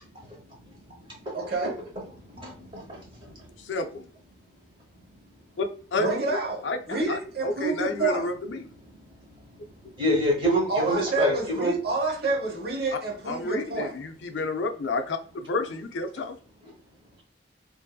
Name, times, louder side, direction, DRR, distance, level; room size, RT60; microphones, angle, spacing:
voice 1, 1.3-1.8 5.9-8.3 10.7-14.0, right 3 dB, 60° right, 0.9 m, -29 dB
voice 2, 2.2-3.5 10.0-11.7, equal, 30° right, 1.0 m, -27 dB
voice 3, 3.6-4.0 5.6-6.1 6.6-6.8 7.1-8.6 13.3-16.4, left 3 dB, 90° left, 0.4 m, -30 dB
2.6 x 2.6 x 2.3 m
head